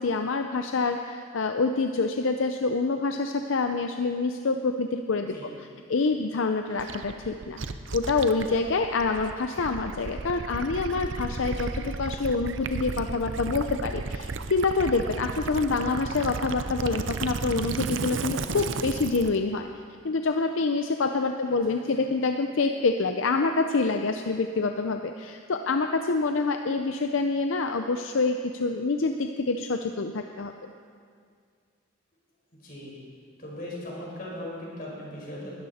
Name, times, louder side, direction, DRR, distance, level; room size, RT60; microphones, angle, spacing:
voice 1, 0.0-5.3 5.9-7.6 7.9-19.7 20.0-30.5, left 3 dB, 75° left, 6 dB, 0.6 m, -26 dB
Gurgling / Liquid, 6.8-19.4, right 3 dB, 65° right, 0.6 m, -34 dB
voice 2, 21.4-22.0 32.5-32.9 33.4-35.6, left 1 dB, 45° left, -4 dB, 4.7 m, -39 dB
20.5 x 13.0 x 4.3 m, 2.2 s
head